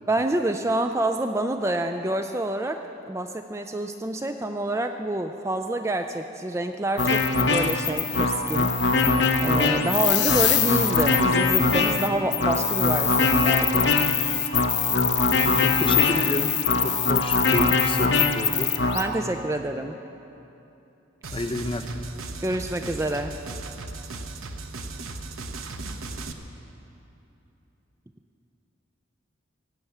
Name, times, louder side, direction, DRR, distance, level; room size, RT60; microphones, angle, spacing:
voice 1, 0.1-7.2 7.5-9.1 9.4-13.9 18.9-20.0 22.4-23.3, right 1 dB, 15° right, 6 dB, 0.3 m, -27 dB
sound 1, 7.0-19.0, left 5 dB, 55° left, 0.9 m, -22 dB
voice 2, 15.4-18.8 21.3-21.9, left 1 dB, 25° left, 5 dB, 0.7 m, -30 dB
sound 2, 21.2-26.3, right 3 dB, 90° right, 0.9 m, -36 dB
17.0 x 8.3 x 7.9 m, 2.9 s
head